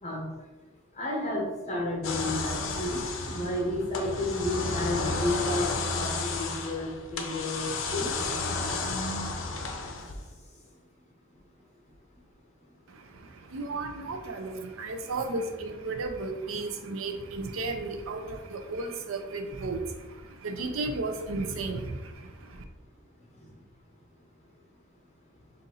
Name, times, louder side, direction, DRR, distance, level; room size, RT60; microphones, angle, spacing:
voice 1, 0.9-8.1, left 1 dB, 35° left, -2 dB, 0.9 m, -31 dB
sound 1, 2.0-10.3, left 3 dB, 70° left, 0.6 m, -32 dB
voice 2, 12.9-22.6, right 3 dB, 85° right, 6 dB, 0.5 m, -34 dB
4.1 x 2.6 x 3.9 m, 1.1 s
head